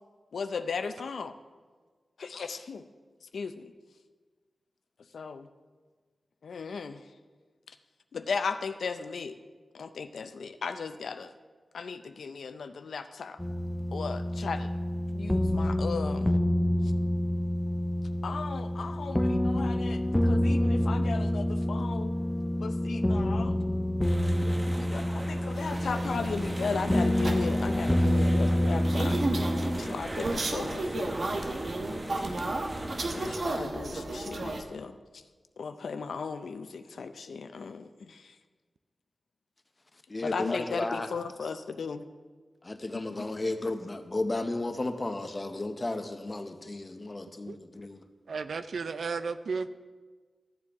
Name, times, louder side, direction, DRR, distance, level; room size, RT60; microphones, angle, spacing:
voice 1, 0.3-1.3 2.2-2.8 3.3-3.7 5.1-5.5 6.4-7.0 8.1-9.4 9.7-11.3 11.7-13.4 13.9-14.7 15.1-16.3 18.2-22.1 22.6-23.6 24.8-29.2 29.7-31.2 33.2-34.9 35.6-38.2 40.2-42.0 43.1-43.2, left 5 dB, 90° left, 9 dB, 0.5 m, -36 dB
sound 1, 13.4-29.8, left 1 dB, 10° left, 0.5 m, -27 dB
sound 2, 24.0-33.3, right 1 dB, 20° right, 0.9 m, -40 dB
sound 3, 25.5-34.6, right 2 dB, 60° right, 0.9 m, -34 dB
voice 2, 40.1-41.1 41.4-41.5 42.6-48.0, left 2 dB, 35° left, 7 dB, 0.8 m, -33 dB
voice 3, 48.3-49.7, right 4 dB, 80° right, 12 dB, 0.4 m, -33 dB
13.5 x 7.4 x 3.6 m, 1.4 s
wide cardioid pair, 80°, 0 cm